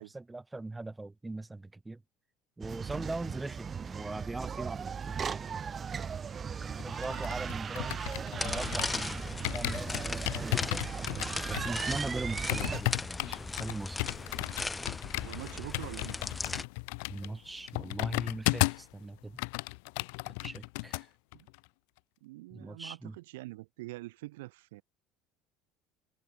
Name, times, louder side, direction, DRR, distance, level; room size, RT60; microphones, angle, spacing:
voice 1, 0.0-2.0 2.6-5.5 5.7-6.0 6.6-10.9 11.5-14.1 17.1-19.4 20.2-21.1 22.5-23.2, right 2 dB, 15° right, 2.0 m, -41 dB
sound 1, 2.6-12.8, right 6 dB, 35° right, 1.0 m, -37 dB
sound 2, 6.8-9.1 9.4-18.9 19.2-21.0 21.3-21.6, left 32 dB, 70° left, 1.8 m, -35 dB
sound 3, 8.4-16.6, left 3 dB, 20° left, 1.1 m, -38 dB
voice 2, 15.2-16.2 21.3-21.5 22.2-24.8, right 20 dB, 75° right, 1.3 m, -44 dB
hypercardioid pair, 70°, 0 cm